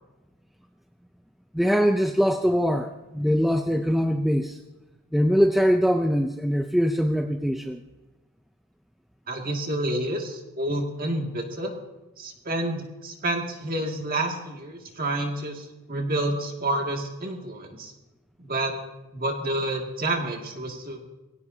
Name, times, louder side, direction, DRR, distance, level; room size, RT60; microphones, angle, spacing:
voice 1, 1.5-4.6 5.1-7.8, equal, ahead, 5 dB, 0.4 m, -22 dB
voice 2, 9.3-11.7 12.2-17.9 18.4-18.7 19.1-21.0, right 1 dB, 40° right, 2 dB, 2.2 m, -29 dB
23.5 x 16.5 x 2.8 m, 1.1 s
head